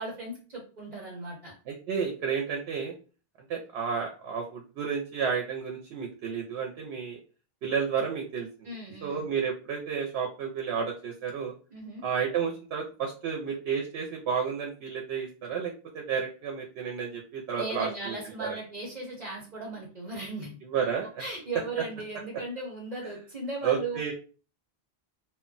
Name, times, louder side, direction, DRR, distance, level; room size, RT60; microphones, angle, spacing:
voice 1, 0.0-1.5 8.6-9.3 11.7-12.0 17.5-20.5 21.2-24.0, right 2 dB, 45° right, -3 dB, 1.0 m, -37 dB
voice 2, 1.7-2.9 3.5-7.2 7.6-8.7 9.0-11.5 12.0-18.1 18.4-18.6 20.6-21.2 23.6-24.1, right 6 dB, 90° right, 1 dB, 0.8 m, -31 dB
2.1 x 2.1 x 3.8 m, 0.37 s
omnidirectional pair, 1.1 m